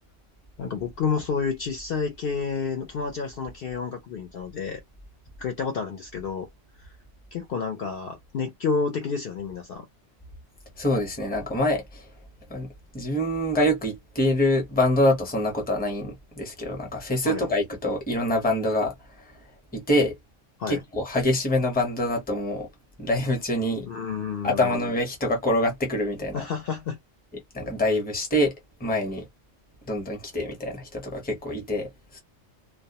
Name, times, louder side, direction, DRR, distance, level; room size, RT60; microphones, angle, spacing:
voice 1, 0.6-4.8 5.4-6.5 6.8-6.9 7.3-9.9 17.2-17.5 20.6-20.8 23.9-24.7 26.3-27.0, left 5 dB, 60° left, 0.7 m, -30 dB
voice 2, 10.8-12.1 12.5-12.7 12.9-19.4 19.7-20.1 20.7-22.7 23.0-23.9 24.4-26.5 27.5-28.5 28.8-29.3 29.8-32.2, left 1 dB, 10° left, 0.7 m, -25 dB
2.2 x 2.1 x 2.8 m
omnidirectional pair, 1.2 m